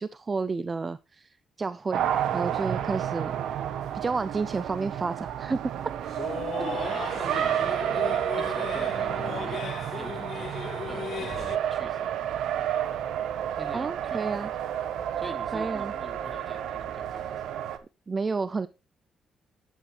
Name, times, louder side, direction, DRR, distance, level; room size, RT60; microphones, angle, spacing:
voice 1, 0.0-3.4 3.9-5.6 13.7-14.5 15.5-15.9 18.1-18.7, right 4 dB, 30° right, 0.5 m, -31 dB
Race car auto racing, 1.9-17.8, right 10 dB, 80° right, 1.1 m, -30 dB
sound 1, 6.0-11.6, left 8 dB, 60° left, 0.7 m, -37 dB
voice 2, 6.6-9.6 9.9-10.6 10.9-12.1 13.6-14.3 15.2-17.4, right 1 dB, 5° right, 2.8 m, -43 dB
11.0 x 8.2 x 3.3 m
cardioid pair, 90°, 0 cm